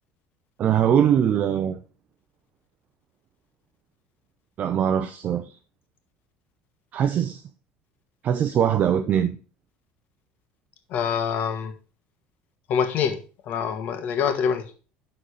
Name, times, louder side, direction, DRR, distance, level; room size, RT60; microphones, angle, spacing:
voice 1, 0.6-1.8 4.6-5.5 6.9-7.4 8.2-9.4, right 9 dB, 45° right, 0.7 m, -22 dB
voice 2, 10.9-11.7 12.7-13.2 13.5-14.7, left 7 dB, 55° left, 1.7 m, -25 dB
12.0 x 4.1 x 4.9 m
cardioid pair, 130°, 4 cm